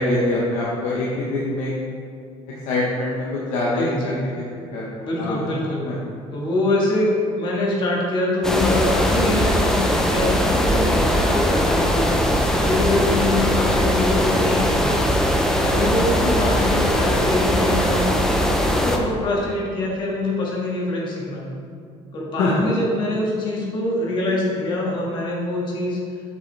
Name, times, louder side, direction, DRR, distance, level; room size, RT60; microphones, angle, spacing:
voice 1, 0.0-1.7 2.7-4.3 4.7-5.5 5.8-5.9 16.2-16.5 22.4-22.6, left 2 dB, 85° left, -5 dB, 1.0 m, -24 dB
voice 2, 3.8-4.2 5.0-5.9 6.3-12.1 12.5-15.1 15.5-18.1 18.5-21.5 22.1-26.0, left 2 dB, 40° left, -3 dB, 1.5 m, -24 dB
sound 1, 8.4-19.0, equal, 5° left, 0.4 m, -20 dB
7.7 x 5.0 x 3.3 m, 2.3 s
cardioid pair, 175°, 12 cm